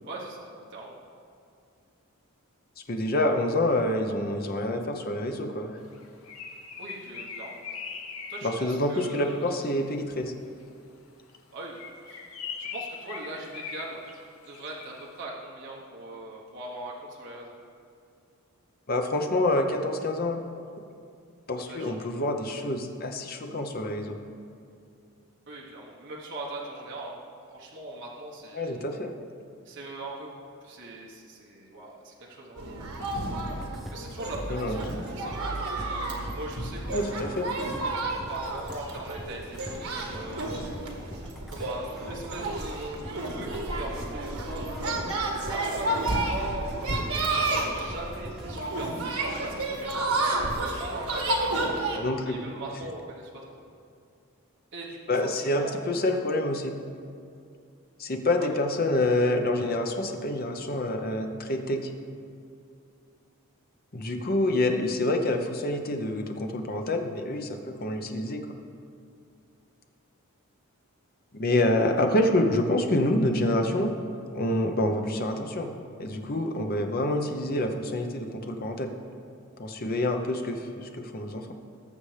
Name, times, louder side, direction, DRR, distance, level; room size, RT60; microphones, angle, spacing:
voice 1, 0.0-1.0 6.8-7.6 8.3-9.5 11.5-12.2 12.6-14.0 14.5-17.5 21.7-22.2 25.5-27.2 27.5-28.8 29.6-30.3 30.6-32.6 33.9-35.7 36.3-37.4 38.3-40.6 41.5-44.8 45.4-51.5 52.2-53.3 54.7-55.0 55.3-55.8 58.4-58.5, right 2 dB, 55° right, -3 dB, 1.2 m, -40 dB
voice 2, 2.9-5.8 8.4-10.3 18.9-20.4 21.5-24.2 28.5-29.1 34.5-34.8 36.9-37.5 51.9-52.4 55.1-56.8 58.0-61.8 63.9-68.5 71.3-73.9 74.3-75.7 76.0-78.9 79.6-81.5, left 1 dB, 45° left, 5 dB, 0.8 m, -27 dB
Bird, 5.9-10.0 11.6-15.1, left 6 dB, 75° left, 0.9 m, -41 dB
sound 1, 32.6-52.0, right 2 dB, 85° right, 1.5 m, -31 dB
sound 2, 33.4-48.8, equal, ahead, 0.7 m, -44 dB
18.5 x 6.9 x 3.3 m, 2.4 s
head